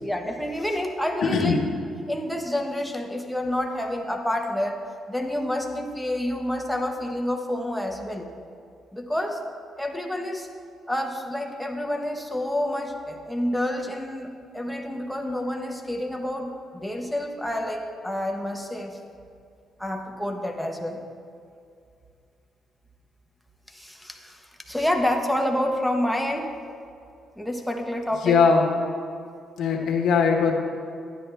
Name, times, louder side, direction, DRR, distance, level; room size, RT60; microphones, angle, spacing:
voice 1, 0.0-1.6 2.1-4.8 5.1-8.3 8.9-9.4 9.8-10.5 10.9-14.3 14.5-19.0 19.8-21.0 23.7-26.5 27.4-28.4, left 1 dB, ahead, 2 dB, 1.1 m, -28 dB
voice 2, 1.2-1.6 28.2-28.8 29.6-30.5, left 5 dB, 75° left, 1 dB, 1.4 m, -20 dB
11.5 x 9.9 x 3.4 m, 2.4 s
cardioid pair, 90°, 0 cm